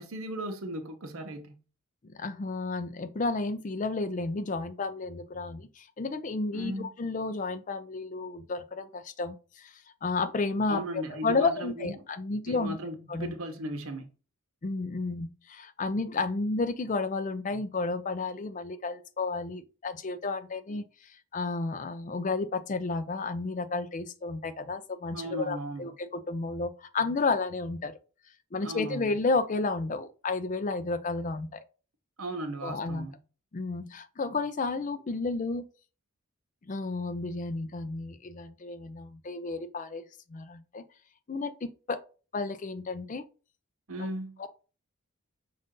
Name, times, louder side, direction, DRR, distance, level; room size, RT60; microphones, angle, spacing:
voice 1, 0.0-1.6 6.5-6.9 10.7-12.0 12.5-14.1 25.1-25.9 28.6-29.2 32.2-33.2 43.9-44.4, right 1 dB, 70° right, 0.8 m, -37 dB
voice 2, 2.0-12.8 13.1-13.3 14.6-27.9 28.5-31.6 32.6-33.1 33.5-35.6 36.7-40.0 40.3-40.8 41.3-42.0 42.3-43.2 44.4-44.5, left 3 dB, 35° left, 0.4 m, -32 dB
5.4 x 2.5 x 3.6 m
head